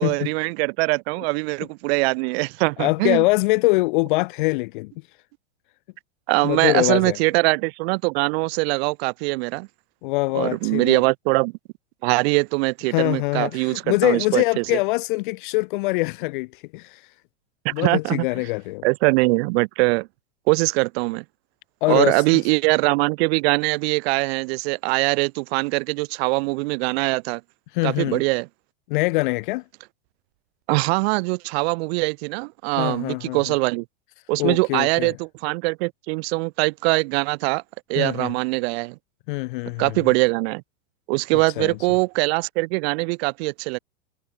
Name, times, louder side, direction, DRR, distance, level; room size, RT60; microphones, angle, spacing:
voice 1, 0.0-3.2 6.3-9.7 10.3-11.5 12.0-14.6 17.6-18.3 18.8-20.1 20.5-21.2 21.9-27.4 27.8-28.5 30.7-33.8 34.3-37.6 37.9-39.0 39.8-40.6 41.1-43.8, right 27 dB, 50° right, 1.6 m, -22 dB
voice 2, 2.8-4.9 6.4-7.2 10.0-11.0 12.9-17.0 17.7-18.8 21.8-22.2 27.7-28.2 28.9-29.6 32.8-33.5 34.4-35.1 38.0-38.3 39.3-40.0 41.6-41.8, left 24 dB, 40° left, 0.4 m, -23 dB
supercardioid pair, 150°, 40 cm